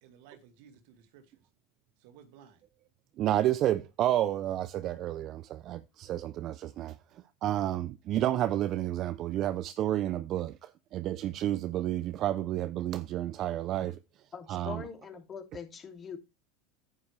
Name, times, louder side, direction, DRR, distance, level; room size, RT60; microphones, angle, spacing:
voice 1, 0.0-1.4 2.0-2.6, right 8 dB, 65° right, 2.3 m, -56 dB
voice 2, 3.2-14.0 14.5-14.9, right 13 dB, 45° right, 0.6 m, -31 dB
voice 3, 14.3-16.2, left 6 dB, 25° left, 2.8 m, -42 dB
9.8 x 9.6 x 3.3 m
supercardioid pair, 120°, 0 cm